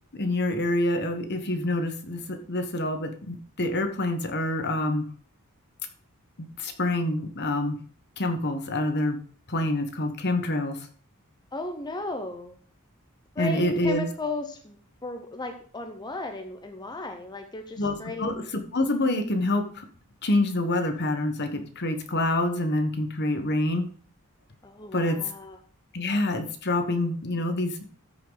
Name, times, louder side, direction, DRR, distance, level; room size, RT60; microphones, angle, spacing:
voice 1, 0.1-5.0 6.4-7.8 8.2-9.2 9.5-10.9 13.4-14.1 17.8-19.9 20.2-23.9 24.9-25.2 25.9-27.9, left 1 dB, 50° left, 7 dB, 1.3 m, -27 dB
voice 2, 11.5-12.6 13.3-18.3 24.6-25.6, left 2 dB, 20° left, 5 dB, 0.9 m, -35 dB
14.0 x 5.7 x 4.0 m, 0.44 s
head